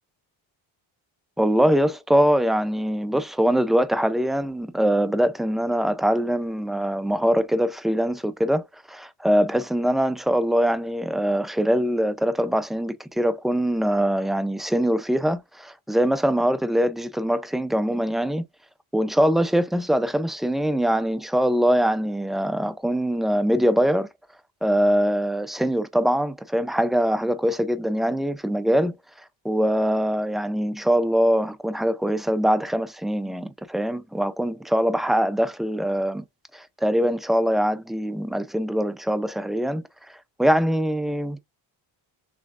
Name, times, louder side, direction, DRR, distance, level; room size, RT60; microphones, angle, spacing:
voice 1, 1.4-8.6 8.9-18.4 18.9-24.1 24.6-29.0 29.4-36.2 36.5-39.8 40.4-41.4, equal, ahead, 0.4 m, -23 dB
6.2 x 3.1 x 2.4 m
cardioid pair, 90°, 48 cm